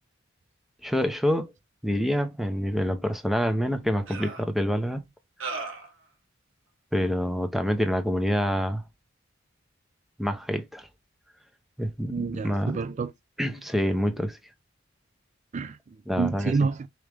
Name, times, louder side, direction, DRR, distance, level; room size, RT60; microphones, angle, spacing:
voice 1, 0.8-1.5 1.8-5.1 6.9-8.8 10.2-10.9 11.8-12.8 13.4-14.4 16.1-16.5, equal, ahead, 0.7 m, -26 dB
sound 1, 3.1-3.2 4.1-4.4 5.4-5.9, right 4 dB, 85° right, 1.5 m, -35 dB
voice 2, 12.1-13.1 15.5-16.9, right 4 dB, 35° right, 0.3 m, -28 dB
4.8 x 3.1 x 3.3 m
head